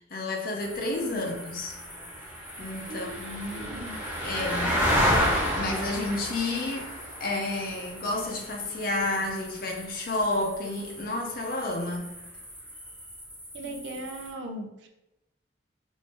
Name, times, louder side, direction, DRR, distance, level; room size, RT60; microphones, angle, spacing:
voice 1, 0.1-1.8 2.6-3.8 4.2-4.7 5.6-6.9 7.2-12.1, left 2 dB, 50° left, 0 dB, 0.6 m, -31 dB
sound 1, 0.6-14.3, equal, 5° right, 0.6 m, -32 dB
voice 2, 2.9-4.0 4.3-4.8 13.5-14.9, right 1 dB, 65° right, 5 dB, 0.4 m, -39 dB
3.3 x 2.6 x 2.9 m, 0.92 s
head